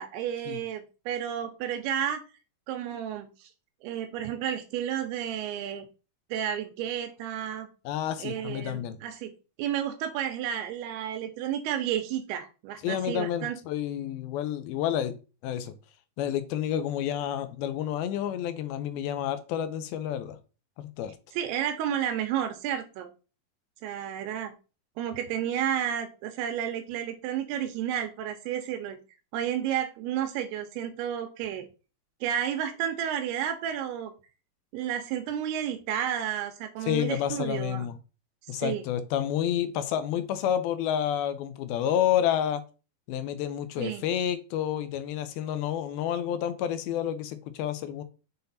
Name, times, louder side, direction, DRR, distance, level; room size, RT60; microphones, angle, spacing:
voice 1, 0.0-2.3 2.7-3.5 3.8-5.9 6.3-7.7 8.2-9.3 9.6-13.6 21.3-23.1 23.8-24.5 25.0-29.0 29.3-31.7 32.2-34.1 34.7-37.9 38.4-38.8 43.8-44.1, right 10 dB, 85° right, 6 dB, 2.7 m, -31 dB
voice 2, 7.9-9.0 12.8-15.1 15.4-15.7 16.2-20.4 20.8-21.2 36.8-38.0 38.5-42.6 43.1-48.0, left 10 dB, 80° left, 11 dB, 2.4 m, -29 dB
6.8 x 4.1 x 4.0 m, 0.33 s
omnidirectional pair, 4.6 m